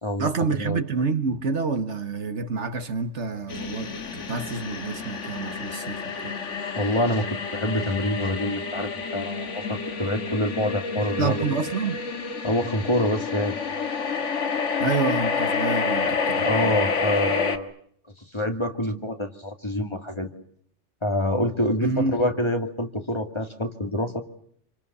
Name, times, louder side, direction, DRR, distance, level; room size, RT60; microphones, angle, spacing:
voice 1, 0.2-6.4 11.0-12.0 14.8-16.8 21.8-22.2, right 4 dB, 70° right, 1.8 m, -28 dB
sound 1, 3.5-17.6, left 5 dB, 75° left, 1.9 m, -29 dB
voice 2, 6.7-11.4 12.4-13.6 16.4-17.7 18.3-20.3 21.0-24.2, left 1 dB, 25° left, 2.4 m, -26 dB
27.5 x 26.5 x 6.8 m
omnidirectional pair, 1.2 m